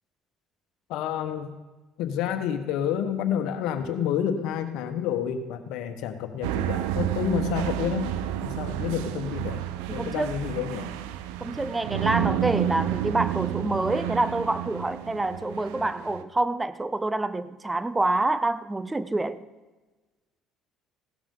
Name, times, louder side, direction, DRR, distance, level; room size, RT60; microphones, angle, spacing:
voice 1, 0.9-1.5 2.0-8.1 8.4-9.6 9.9-10.9 12.2-12.5, left 9 dB, 75° left, 1.3 m, -29 dB
sound 1, 6.4-16.2, right 12 dB, 85° right, 0.7 m, -30 dB
voice 2, 9.9-10.4 11.4-19.4, right 2 dB, 15° right, 0.6 m, -27 dB
17.0 x 12.5 x 3.9 m
supercardioid pair, 80°, 0 cm